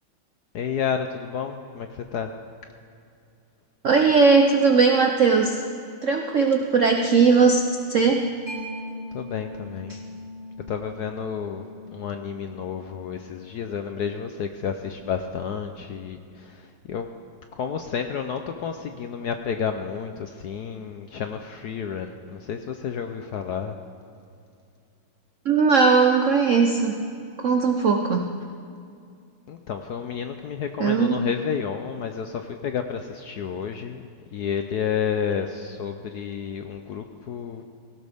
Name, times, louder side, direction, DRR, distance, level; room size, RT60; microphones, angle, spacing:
voice 1, 0.5-2.3 9.1-9.9 10.7-11.7 11.9-17.1 17.6-23.8 29.5-34.0 34.3-37.6, left 7 dB, 70° left, 6 dB, 1.0 m, -30 dB
voice 2, 3.8-5.6 6.0-7.6 7.9-8.3 9.9-10.0 25.5-27.0 27.4-28.3 30.8-31.2, right 5 dB, 70° right, 4 dB, 0.7 m, -19 dB
Mallet percussion, 8.5-15.7, left 1 dB, 20° right, 3.7 m, -42 dB
18.0 x 16.0 x 3.5 m, 2.4 s
omnidirectional pair, 2.3 m